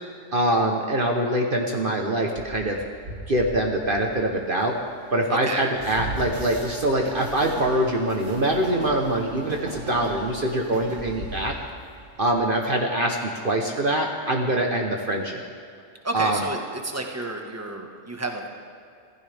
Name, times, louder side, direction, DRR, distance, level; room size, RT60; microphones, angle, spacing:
voice 1, 0.3-2.8 3.3-4.8 5.1-11.5 12.2-15.4 16.1-16.4, right 1 dB, 45° right, 1 dB, 1.3 m, -24 dB
Train, 2.4-12.8, right 2 dB, 75° right, 2.2 m, -38 dB
voice 2, 5.3-5.6 16.0-18.5, right 2 dB, 10° right, 2 dB, 1.5 m, -31 dB
25.5 x 16.0 x 3.5 m, 2.4 s
omnidirectional pair, 1.3 m